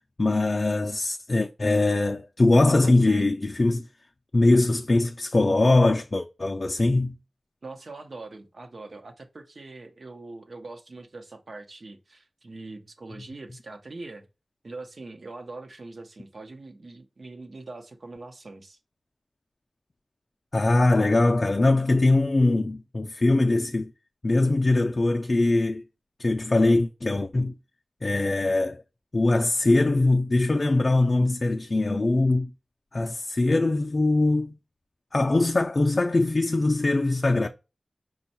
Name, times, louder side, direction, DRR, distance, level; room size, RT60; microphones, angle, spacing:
voice 1, 0.2-3.9 4.3-7.2 20.5-23.9 24.2-25.8 26.2-27.6 28.0-28.8 29.1-32.5 32.9-34.6 35.1-37.5, left 2 dB, 45° left, 0.4 m, -22 dB
voice 2, 2.8-3.3 7.6-14.3 14.6-18.8, right 3 dB, 65° right, 0.8 m, -42 dB
5.3 x 2.3 x 4.2 m
wide cardioid pair, 95°, 0 cm